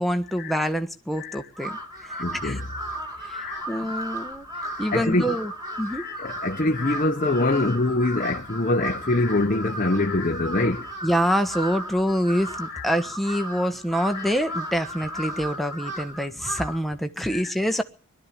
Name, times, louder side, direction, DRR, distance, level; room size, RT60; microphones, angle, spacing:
voice 1, 0.0-2.6 3.2-4.5 4.8-5.5 5.8-6.0 11.0-17.8, equal, ahead, 1.3 m, -26 dB
Crow, 1.5-16.9, equal, 15° right, 3.4 m, -35 dB
voice 2, 2.2-2.6 3.4-3.7 4.9-5.3 5.9-10.9 12.7-12.9 14.1-14.3 17.3-17.5, left 2 dB, 35° left, 0.9 m, -24 dB
21.5 x 13.0 x 9.9 m
head